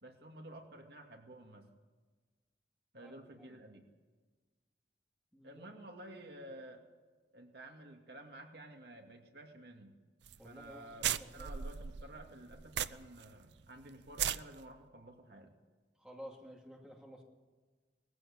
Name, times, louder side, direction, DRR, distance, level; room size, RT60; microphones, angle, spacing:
voice 1, 0.0-1.7 2.9-3.8 5.4-6.9 7.3-9.9 10.4-15.6, right 1 dB, 65° right, 3 dB, 2.4 m, -52 dB
voice 2, 3.0-3.6 5.3-5.7 10.4-11.5 16.0-17.2, equal, 5° right, 0 dB, 2.5 m, -53 dB
sound 1, 10.2-10.4 10.7-10.8 11.0-13.2 13.6-13.7 14.1-14.4, right 9 dB, 80° right, 0.6 m, -36 dB
19.5 x 15.5 x 8.6 m, 1.3 s
head